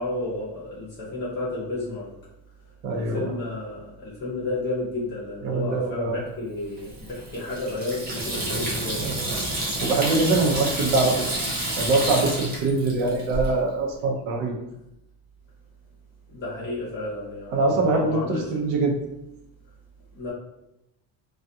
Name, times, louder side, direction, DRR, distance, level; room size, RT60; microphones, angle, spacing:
voice 1, 0.0-2.1 2.9-9.0 16.3-18.4 20.1-20.3, left 2 dB, 25° left, -8 dB, 0.7 m, -32 dB
voice 2, 2.8-3.3 5.4-6.2 9.0-9.4 9.8-11.4 11.8-14.5 17.5-18.9, right 3 dB, 70° right, 0 dB, 0.7 m, -23 dB
Water tap faucet / Sink (filling or washing), 6.8-13.5, right 1 dB, 20° right, 0.4 m, -29 dB
2.4 x 2.3 x 2.7 m, 0.87 s
cardioid pair, 165°, 45 cm